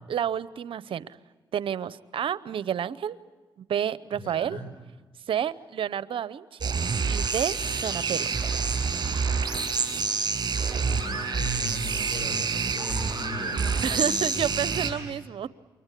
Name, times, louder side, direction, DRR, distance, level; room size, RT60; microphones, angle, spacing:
voice 1, 0.1-1.1 1.5-3.2 3.6-4.6 5.3-6.6 7.1-7.5 7.8-8.3 13.6-15.5, right 9 dB, 70° right, 16 dB, 0.8 m, -30 dB
voice 2, 4.1-4.7 10.8-15.1, equal, 75° left, 6 dB, 8.0 m, -38 dB
sound 1, 6.6-14.9, right 5 dB, 45° right, 6.8 m, -27 dB
28.5 x 24.0 x 8.3 m, 1.3 s
cardioid pair, 65°, 9 cm